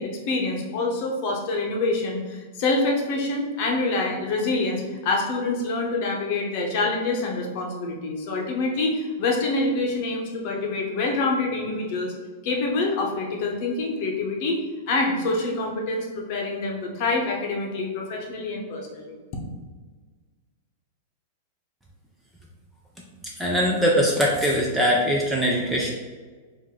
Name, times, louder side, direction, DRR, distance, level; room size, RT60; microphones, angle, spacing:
voice 1, 0.0-12.1 12.4-14.6 14.9-19.1, left 3 dB, 40° left, 0 dB, 0.8 m, -26 dB
voice 2, 23.4-25.9, equal, 5° right, -3 dB, 0.4 m, -21 dB
4.6 x 2.5 x 3.7 m, 1.4 s
supercardioid pair, 170°, 0 cm